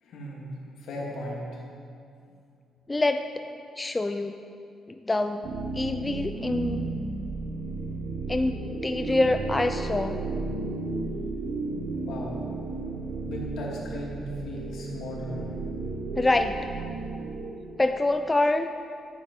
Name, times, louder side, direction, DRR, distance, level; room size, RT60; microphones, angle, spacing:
voice 1, 0.0-1.6 12.1-12.3 13.2-15.5, left 1 dB, 75° left, -3 dB, 2.4 m, -36 dB
voice 2, 2.9-3.3 3.8-4.3 4.9-5.5 5.7-6.9 8.3-10.2 16.2-16.6 17.8-18.7, left 2 dB, 20° left, 8 dB, 0.4 m, -25 dB
sound 1, 5.4-17.5, right 3 dB, 65° right, 1.3 m, -33 dB
9.5 x 8.4 x 5.3 m, 2.5 s
cardioid pair, 90°, 0 cm